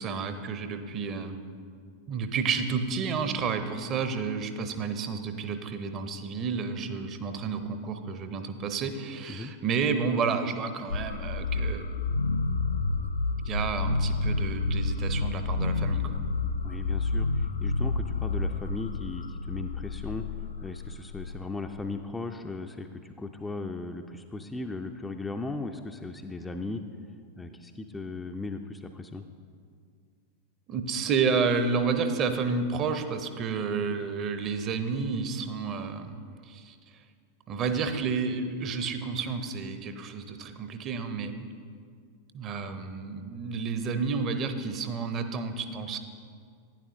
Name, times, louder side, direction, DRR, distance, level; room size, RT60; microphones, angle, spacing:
voice 1, 0.0-1.4 2.1-11.8 13.4-16.2 30.7-36.1 36.4-36.8 37.5-41.3 42.3-46.0, right 5 dB, 30° right, 8 dB, 0.7 m, -30 dB
sound 1, 10.9-21.8, left 3 dB, 75° left, 0.3 m, -29 dB
voice 2, 16.6-20.3 20.6-26.8 27.4-29.2, left 3 dB, 10° left, 5 dB, 0.4 m, -37 dB
11.5 x 9.9 x 2.6 m, 2.1 s
figure-of-eight pair, 90°, 0 cm